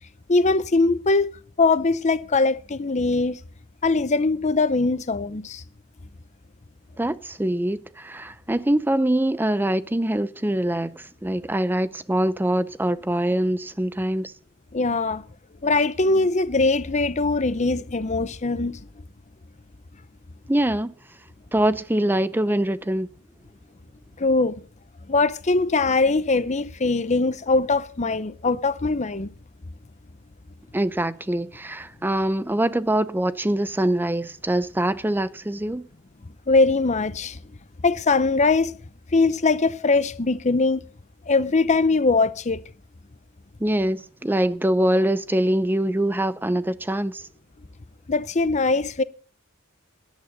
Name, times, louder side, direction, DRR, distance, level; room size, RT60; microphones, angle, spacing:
voice 1, 0.3-1.3 1.6-3.4 3.8-5.6 14.7-15.2 15.6-18.8 24.2-24.6 25.1-29.3 36.5-37.4 37.8-38.8 39.1-40.8 41.3-42.6 48.1-49.0, left 3 dB, 35° left, 0.7 m, -21 dB
voice 2, 7.0-14.3 20.5-20.9 21.5-23.1 30.7-35.8 43.6-47.2, right 1 dB, 10° right, 0.5 m, -24 dB
17.0 x 11.5 x 4.0 m
head